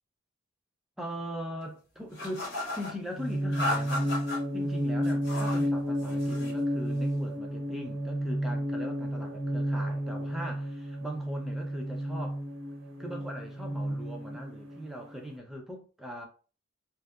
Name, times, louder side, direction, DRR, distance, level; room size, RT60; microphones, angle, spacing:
voice 1, 1.0-4.1 4.5-12.4 13.0-16.3, equal, ahead, 0.3 m, -40 dB
sound 1, 2.1-2.9 3.5-4.4 5.0-5.7 6.0-6.6, left 1 dB, 55° left, 1.0 m, -34 dB
sound 2, 3.2-15.2, equal, 70° right, 0.6 m, -32 dB
2.7 x 2.2 x 2.2 m
head